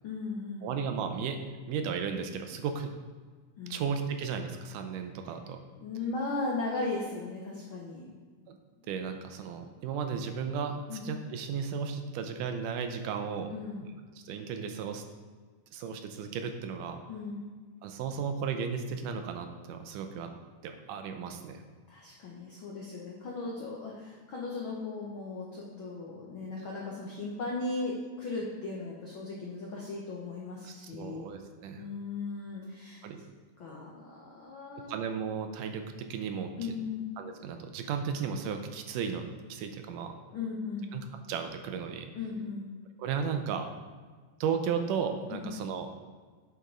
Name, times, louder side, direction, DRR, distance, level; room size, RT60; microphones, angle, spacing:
voice 1, 0.0-0.8 3.6-3.8 5.8-8.1 10.9-11.1 13.5-13.9 17.1-17.5 21.9-31.3 31.8-33.0 33.6-35.0 36.6-37.1 40.3-40.9 42.1-42.7 45.3-45.5, left 3 dB, 85° left, -3 dB, 1.1 m, -37 dB
voice 2, 0.6-1.4 1.7-2.9 3.7-5.7 8.5-8.6 8.9-13.5 13.8-13.9 14.3-15.0 15.7-17.0 17.8-20.3 20.6-21.6 30.6-31.8 33.0-33.2 34.9-36.7 37.2-40.1 40.9-42.1 43.0-43.7 44.4-45.9, right 6 dB, 80° right, 6 dB, 2.2 m, -35 dB
8.3 x 5.9 x 3.8 m, 1.5 s
omnidirectional pair, 3.8 m